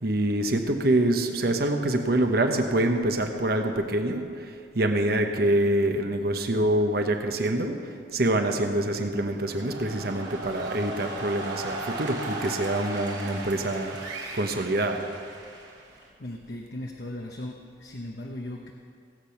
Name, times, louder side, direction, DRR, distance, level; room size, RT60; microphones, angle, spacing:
voice 1, 0.0-4.2 4.7-7.8 8.1-14.0 14.3-15.0, right 1 dB, 55° right, 5 dB, 1.1 m, -25 dB
sound 1, 9.2-16.1, right 2 dB, 85° right, 2.9 m, -37 dB
voice 2, 16.2-18.7, left 1 dB, 65° left, 1 dB, 1.0 m, -37 dB
18.0 x 8.3 x 5.9 m, 2.2 s
head